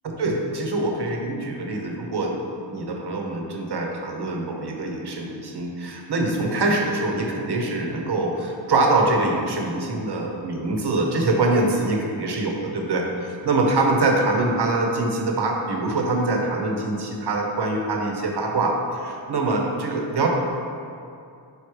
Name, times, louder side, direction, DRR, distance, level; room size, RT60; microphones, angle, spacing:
voice 1, 0.0-20.3, right 2 dB, 60° right, 1 dB, 0.9 m, -24 dB
5.2 x 4.8 x 4.7 m, 2.5 s
wide cardioid pair, 165°, 46 cm